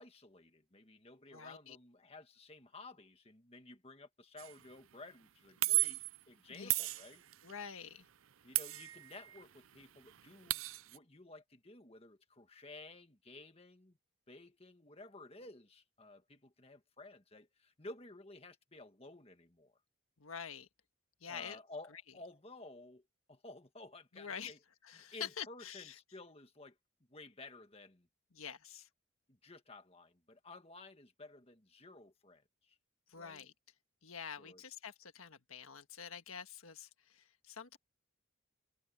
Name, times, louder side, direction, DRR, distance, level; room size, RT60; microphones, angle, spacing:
voice 1, 0.0-7.2 8.4-14.0 14.3-19.8 21.3-23.0 23.3-24.6 24.9-26.8 27.1-28.1 29.3-32.8 33.1-33.5 34.3-34.6, left 2 dB, 30° left, 1.7 m, -54 dB
voice 2, 1.3-1.8 5.6-5.7 6.5-6.7 7.4-8.1 20.2-20.7 21.2-21.6 24.1-24.5 24.8-25.9 28.3-28.9 33.1-33.5 34.0-37.8, left 7 dB, 85° left, 1.6 m, -47 dB
sound 1, 4.4-4.6 5.6-6.2 6.7-7.5 8.5-9.4 9.7-9.8 10.1-11.0, right 18 dB, 75° right, 0.6 m, -35 dB
head